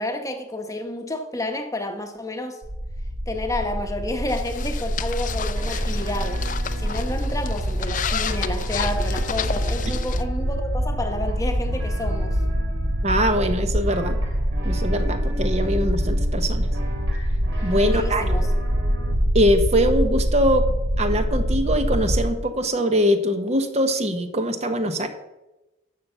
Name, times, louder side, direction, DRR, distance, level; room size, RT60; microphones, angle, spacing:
voice 1, 0.0-2.6 3.3-6.4 6.8-12.4 17.8-18.5, left 1 dB, 15° left, 5 dB, 1.0 m, -30 dB
sound 1, 2.6-22.3, equal, 70° right, 1.2 m, -25 dB
sound 2, 4.3-10.2, left 7 dB, 40° left, 0.5 m, -32 dB
sound 3, 5.5-19.1, equal, 85° right, 2.8 m, -40 dB
voice 2, 13.0-14.2 14.6-16.7 17.6-18.3 19.3-20.7 21.0-25.1, equal, 35° right, 7 dB, 0.9 m, -22 dB
11.5 x 6.8 x 6.8 m, 1.0 s
head